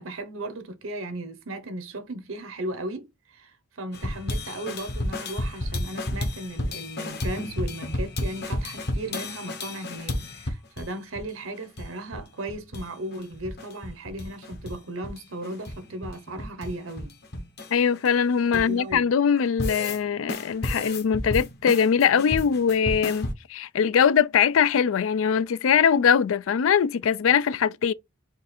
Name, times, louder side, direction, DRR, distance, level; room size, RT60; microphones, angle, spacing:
voice 1, 0.0-17.2 18.5-19.1, right 1 dB, 90° right, 1.0 m, -36 dB
sound 1, 3.9-10.9 11.2-11.3 11.5-12.2 12.5-12.9 13.1-14.8 15.0-18.9 19.4-20.0 20.3-23.3, left 1 dB, 55° left, 1.1 m, -32 dB
voice 2, 17.7-27.9, left 7 dB, 90° left, 0.4 m, -22 dB
4.8 x 2.5 x 4.2 m
head